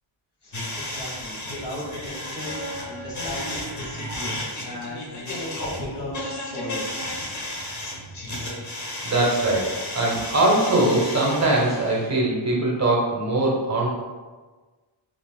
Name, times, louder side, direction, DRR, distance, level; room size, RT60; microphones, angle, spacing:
voice 1, 0.4-6.8, left 1 dB, 60° left, -4 dB, 0.9 m, -36 dB
sound 1, 0.5-12.1, left 1 dB, 40° left, 0.6 m, -33 dB
voice 2, 9.0-13.9, right 2 dB, 35° right, -3 dB, 0.6 m, -21 dB
2.4 x 2.4 x 3.4 m, 1.3 s
wide cardioid pair, 165°, 46 cm